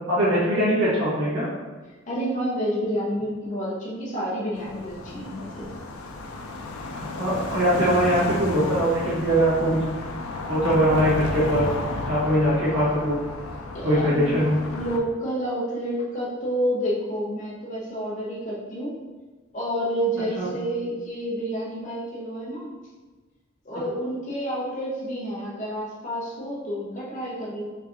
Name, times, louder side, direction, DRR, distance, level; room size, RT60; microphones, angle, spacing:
voice 1, 0.1-1.5 7.0-9.8 10.4-11.7 12.0-13.2 13.8-14.6 20.4-20.5 23.7-23.8, equal, 70° right, -8 dB, 1.3 m, -22 dB
voice 2, 2.1-5.7 13.7-14.4 14.7-18.9 19.5-22.7 23.6-27.8, equal, 35° left, -5 dB, 0.7 m, -29 dB
sound 1, 4.5-15.0, left 2 dB, 80° left, 0.4 m, -33 dB
4.6 x 2.7 x 2.5 m, 1.3 s
head